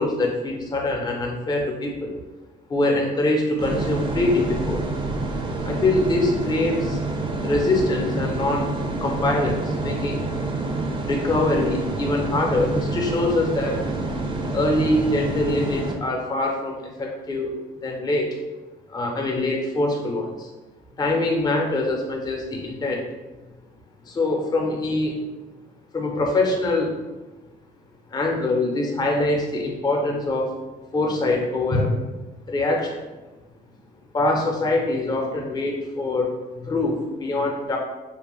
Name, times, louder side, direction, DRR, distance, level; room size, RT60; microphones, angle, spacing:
voice 1, 0.0-2.1 2.7-4.8 5.6-7.0 7.4-8.7 9.0-10.3 11.0-13.8 14.5-17.5 17.8-18.3 18.9-20.5 21.0-23.0 24.1-25.2 25.9-26.9 28.1-30.5 30.9-32.0 32.5-33.0 34.1-37.8, left 2 dB, 25° left, 1 dB, 0.5 m, -24 dB
sound 1, 3.6-15.9, right 3 dB, 30° right, 0.4 m, -28 dB
2.8 x 2.2 x 3.0 m, 1.1 s
cardioid pair, 110°, 17 cm